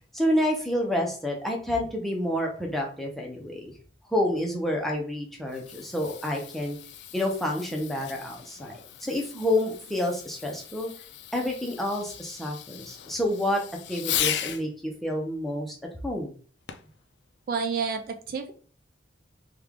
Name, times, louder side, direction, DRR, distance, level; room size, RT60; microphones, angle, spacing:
voice 1, 0.1-3.7 4.1-6.8 7.1-8.7 9.0-10.9 11.3-13.6 13.9-14.7 15.0-15.7 16.0-16.3, left 1 dB, ahead, -1 dB, 0.6 m, -28 dB
Fireworks, 5.3-14.7 16.7-17.0 17.7-17.8, left 10 dB, 65° left, 0.4 m, -37 dB
voice 2, 17.5-18.5, right 5 dB, 50° right, 5 dB, 0.3 m, -29 dB
3.2 x 2.3 x 3.5 m, 0.42 s
head